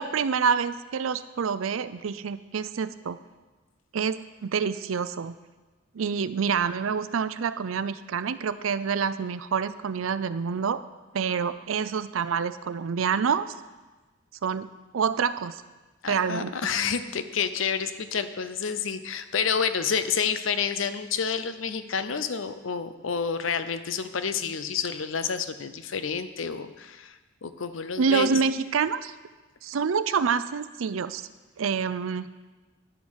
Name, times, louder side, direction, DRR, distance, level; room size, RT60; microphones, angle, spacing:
voice 1, 0.0-3.2 3.9-5.3 5.9-10.8 11.1-13.5 14.4-14.7 14.9-15.6 16.1-16.5 28.0-29.1 29.6-31.3 31.6-32.3, right 6 dB, 85° right, 14 dB, 0.5 m, -27 dB
voice 2, 16.0-28.3, left 6 dB, 75° left, 11 dB, 0.6 m, -29 dB
10.5 x 7.2 x 6.4 m, 1.2 s
head